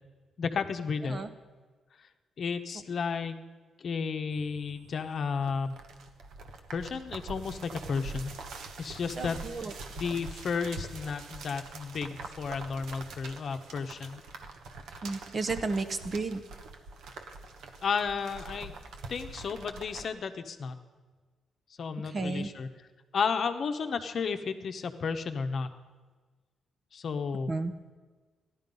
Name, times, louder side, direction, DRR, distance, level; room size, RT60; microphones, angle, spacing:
voice 1, 0.4-1.2 2.4-3.4 3.8-5.8 6.7-8.3 8.8-14.2 17.8-18.7 19.1-20.8 21.8-22.7 23.1-25.7 26.9-27.5, left 5 dB, 50° left, 7 dB, 0.9 m, -33 dB
sound 1, 4.3-20.1, right 3 dB, 80° right, 1.2 m, -44 dB
voice 2, 9.2-9.7 15.0-16.4 22.0-22.5 27.5-27.7, right 3 dB, 35° right, 10 dB, 0.8 m, -32 dB
15.0 x 11.5 x 5.4 m, 1.4 s
cardioid pair, 140°, 0 cm